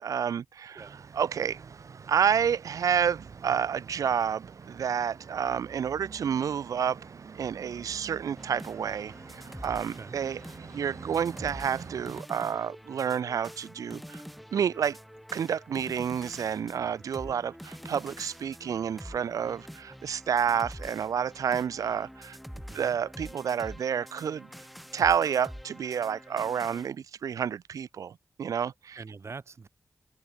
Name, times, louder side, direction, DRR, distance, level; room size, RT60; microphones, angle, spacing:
voice 1, 0.0-0.8 1.1-1.6 2.1-7.0 7.3-10.4 10.7-14.2 14.5-15.0 15.3-22.4 22.7-24.5 24.9-29.0, right 8 dB, 90° right, 0.4 m, -29 dB
sound 1, 0.8-12.2, right 5 dB, 70° right, 2.2 m, -47 dB
sound 2, 8.4-26.9, equal, ahead, 1.6 m, -46 dB
voice 2, 22.5-23.0 29.0-29.7, right 4 dB, 55° right, 1.9 m, -45 dB
open air
wide cardioid pair, 75°, 6 cm